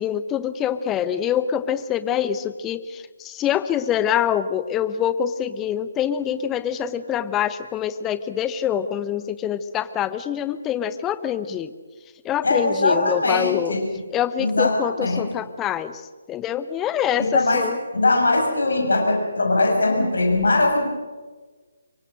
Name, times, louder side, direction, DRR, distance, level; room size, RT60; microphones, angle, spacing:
voice 1, 0.0-11.7 12.2-13.8 14.1-16.0 16.3-17.8, left 9 dB, 15° left, 13 dB, 1.0 m, -25 dB
voice 2, 12.4-13.8 14.4-15.3 17.2-17.7 17.9-20.8, left 2 dB, 60° left, 2 dB, 7.0 m, -20 dB
26.5 x 23.5 x 6.3 m, 1.4 s
figure-of-eight pair, 140°, 0 cm